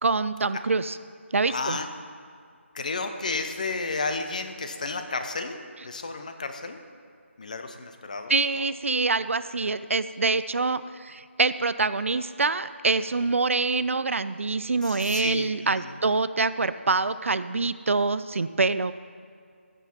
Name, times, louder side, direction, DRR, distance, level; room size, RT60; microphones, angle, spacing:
voice 1, 0.0-1.0 1.3-1.8 8.3-18.9, right 3 dB, 75° right, 14 dB, 0.4 m, -25 dB
voice 2, 1.5-1.9 2.7-6.8 7.4-8.6 14.8-15.5 15.8-15.9, left 3 dB, 35° left, 7 dB, 0.6 m, -32 dB
15.0 x 6.2 x 4.3 m, 2.2 s
figure-of-eight pair, 170°, 7 cm